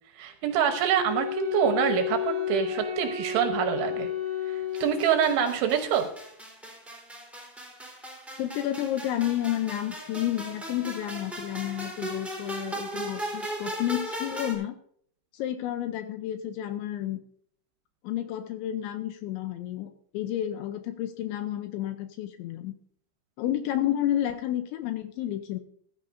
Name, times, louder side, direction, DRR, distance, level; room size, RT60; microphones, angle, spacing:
voice 1, 0.2-4.1 4.5-6.1, right 9 dB, 75° right, 5 dB, 3.2 m, -26 dB
Wind instrument woodwind instrument, 1.0-5.5, left 8 dB, 25° right, 3.6 m, -31 dB
sound 1, 4.7-14.5, right 1 dB, ahead, 2.4 m, -38 dB
voice 2, 8.4-14.8 15.3-17.2 18.0-22.8 23.4-25.6, left 12 dB, 90° left, 8 dB, 2.6 m, -31 dB
15.0 x 13.0 x 2.6 m, 0.63 s
omnidirectional pair, 6.0 m